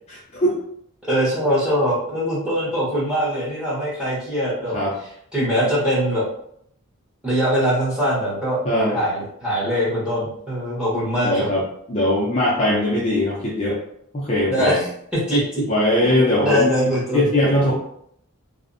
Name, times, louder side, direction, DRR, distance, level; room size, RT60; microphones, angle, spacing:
voice 1, 0.1-0.6 4.7-4.9 8.6-9.0 11.2-11.6 11.9-13.8 14.1-14.8 15.7-17.7, left 1 dB, 30° left, -6 dB, 0.4 m, -20 dB
voice 2, 1.0-4.8 5.3-6.2 7.2-8.6 8.9-11.5 14.5-14.9 15.1-15.7 16.0-17.3, equal, 5° right, -9 dB, 0.9 m, -22 dB
2.5 x 2.1 x 2.5 m, 0.70 s
head